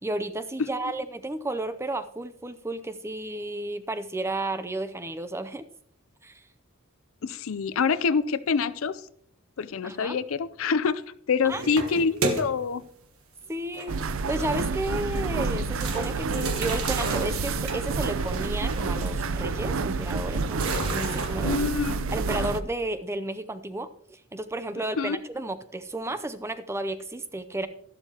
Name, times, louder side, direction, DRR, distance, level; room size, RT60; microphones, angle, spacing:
voice 1, 0.0-5.7 6.2-6.4 9.8-10.2 11.4-11.9 13.5-14.0 14.3-21.6 22.1-27.7, right 1 dB, 10° right, 12 dB, 0.5 m, -33 dB
voice 2, 7.2-9.0 9.6-11.0 11.3-12.8 21.4-22.1 25.0-25.2, left 5 dB, 70° left, 16 dB, 0.5 m, -26 dB
sound 1, 11.4-12.8 13.7-14.8 15.2-15.3 15.8-21.3, right 2 dB, 80° right, 1.3 m, -33 dB
sound 2, 13.9-22.6, right 4 dB, 65° right, 0.5 m, -29 dB
12.5 x 11.5 x 2.9 m, 0.67 s
head